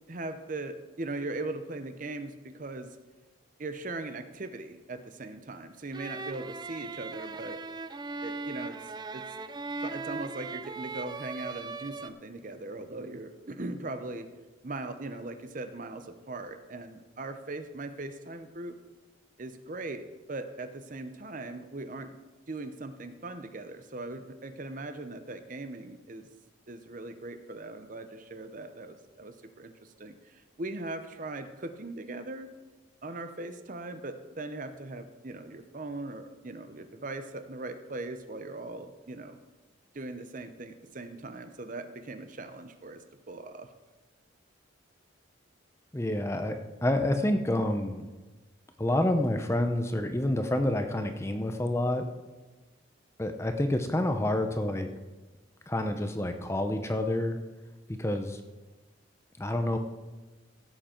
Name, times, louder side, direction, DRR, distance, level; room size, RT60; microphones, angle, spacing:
voice 1, 0.1-3.0 3.6-7.6 8.2-9.3 9.8-14.3 14.6-18.7 19.4-22.2 22.5-26.3 26.7-32.5 33.0-39.4 39.9-43.7, right 2 dB, 40° right, 9 dB, 0.7 m, -39 dB
sound 1, 5.9-12.1, right 3 dB, 20° right, 0.3 m, -39 dB
voice 2, 45.9-48.1 48.8-52.0 53.2-54.9 55.7-57.4 57.9-58.4 59.4-59.8, left 1 dB, 15° left, 6 dB, 0.7 m, -28 dB
16.0 x 7.8 x 4.4 m, 1.2 s
head